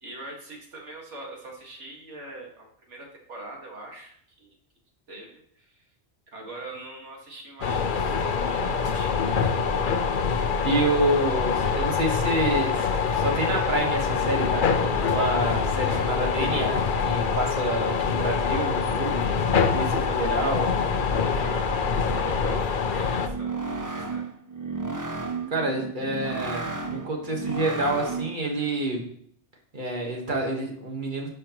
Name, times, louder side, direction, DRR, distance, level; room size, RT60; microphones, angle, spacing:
voice 1, 0.0-4.6 5.1-5.8 6.3-9.4 21.5-23.6 24.0-24.2, right 2 dB, 80° right, -1 dB, 2.2 m, -43 dB
sound 1, 7.6-23.3, left 5 dB, 50° left, 0.8 m, -25 dB
voice 2, 10.4-12.9 13.1-14.7 15.1-19.2 19.7-20.7 25.5-29.0 29.7-31.3, right 1 dB, 45° right, 1 dB, 1.6 m, -28 dB
sound 2, 23.2-28.5, right 4 dB, 25° right, 0.5 m, -33 dB
11.5 x 6.4 x 3.0 m, 0.66 s
omnidirectional pair, 1.2 m